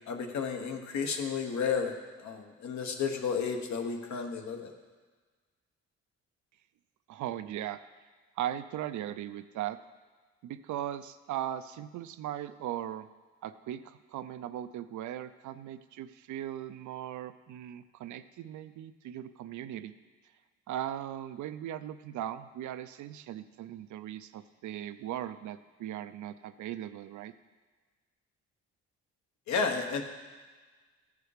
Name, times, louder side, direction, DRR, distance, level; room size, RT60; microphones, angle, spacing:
voice 1, 0.1-4.7 29.5-30.0, left 5 dB, 70° left, 4 dB, 1.1 m, -32 dB
voice 2, 7.1-7.8 8.4-9.8 10.4-13.1 13.4-19.9 20.7-27.3, right 11 dB, 85° right, 12 dB, 0.5 m, -38 dB
14.5 x 4.8 x 4.9 m, 1.4 s
cardioid pair, 135°, 29 cm